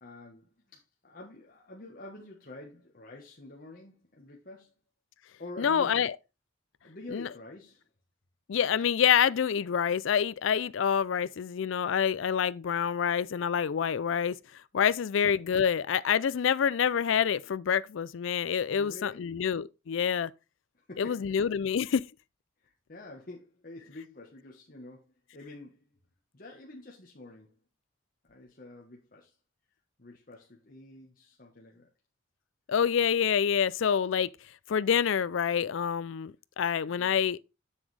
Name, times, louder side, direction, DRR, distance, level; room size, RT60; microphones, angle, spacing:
voice 1, 0.0-4.7 5.4-6.0 6.8-7.9 18.7-19.2 20.7-21.3 22.6-25.9 26.3-27.6 28.3-29.3 30.0-31.9 36.9-37.2, left 2 dB, 45° left, 1.2 m, -48 dB
voice 2, 5.6-6.1 7.1-7.3 8.5-14.4 14.7-20.3 21.0-22.0 32.7-34.3 34.7-37.4, left 7 dB, 65° left, 0.4 m, -27 dB
7.3 x 6.9 x 3.3 m
head